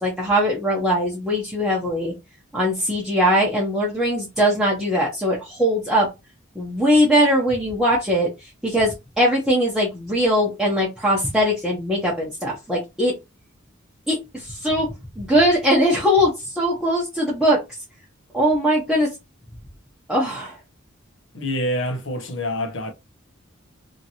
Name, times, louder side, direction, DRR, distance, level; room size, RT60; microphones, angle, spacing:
voice 1, 0.0-2.1 2.5-6.1 6.6-8.3 8.6-13.1 14.1-14.2 14.5-14.9 15.2-17.6 18.3-19.1 20.1-20.5, equal, ahead, 0.8 m, -20 dB
voice 2, 21.3-22.9, left 1 dB, 65° left, 0.8 m, -26 dB
2.9 x 2.6 x 2.9 m
head